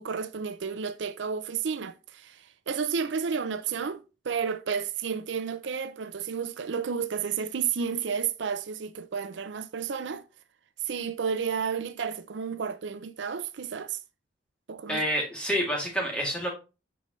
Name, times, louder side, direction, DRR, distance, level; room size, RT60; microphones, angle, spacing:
voice 1, 0.0-10.3 10.8-14.0 14.7-15.0, right 6 dB, 70° right, 0.5 m, -31 dB
voice 2, 14.9-16.5, equal, 5° left, 2.6 m, -28 dB
8.5 x 5.2 x 3.1 m
head